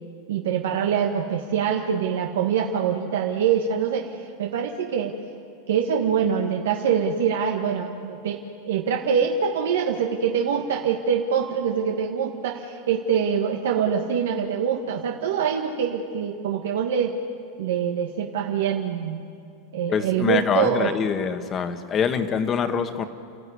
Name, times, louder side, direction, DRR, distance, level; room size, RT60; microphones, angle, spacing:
voice 1, 0.3-5.1 5.7-17.1 17.6-19.2 19.7-20.9, right 7 dB, 90° right, 2 dB, 1.6 m, -24 dB
voice 2, 19.9-23.0, left 6 dB, 25° left, 8 dB, 1.4 m, -24 dB
29.5 x 13.5 x 9.6 m, 2.4 s
supercardioid pair, 150°, 0 cm